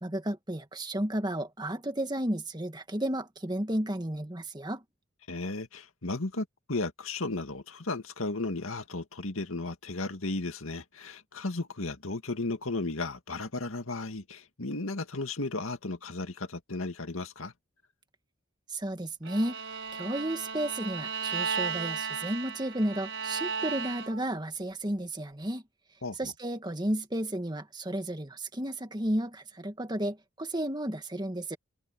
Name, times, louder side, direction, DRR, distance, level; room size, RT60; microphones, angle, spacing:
voice 1, 0.0-4.8 18.7-19.5 19.9-25.6 26.1-31.6, right 1 dB, 20° right, 1.7 m, -33 dB
voice 2, 5.3-17.5 26.0-26.3, left 2 dB, 85° left, 2.1 m, -35 dB
Bowed string instrument, 19.2-24.4, right 6 dB, 65° right, 5.5 m, -35 dB
head